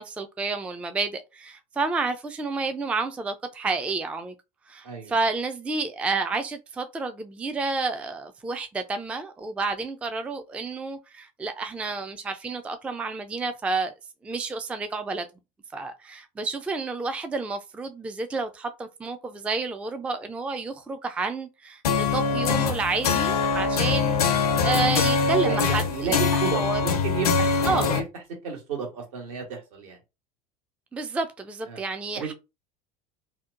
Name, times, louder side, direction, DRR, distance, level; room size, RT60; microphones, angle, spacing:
voice 1, 0.0-4.3 4.7-13.9 14.2-15.3 15.7-25.8 26.1-26.8 27.7-27.9 30.9-32.3, right 4 dB, 5° right, 0.3 m, -30 dB
sound 1, 21.8-28.0, left 5 dB, 80° left, 0.5 m, -23 dB
voice 2, 24.8-28.0 28.4-30.0 31.7-31.8 32.1-32.3, right 6 dB, 70° right, 1.3 m, -32 dB
2.7 x 2.1 x 2.4 m
hypercardioid pair, 75°, 19 cm